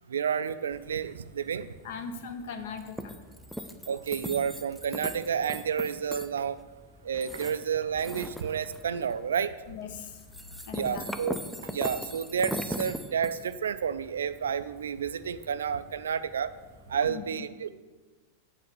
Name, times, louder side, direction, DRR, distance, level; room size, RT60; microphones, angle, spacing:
voice 1, 0.1-1.7 3.9-6.6 7.0-9.5 10.7-11.4 11.6-16.5 16.9-17.7, right 7 dB, 65° right, 14 dB, 0.3 m, -30 dB
sound 1, 0.7-17.1, equal, ahead, 0.5 m, -41 dB
voice 2, 1.8-3.1 9.7-10.2 10.6-11.0 17.1-17.4, left 6 dB, 55° left, 8 dB, 0.9 m, -39 dB
8.6 x 4.2 x 7.0 m, 1.3 s
figure-of-eight pair, 90°, 0 cm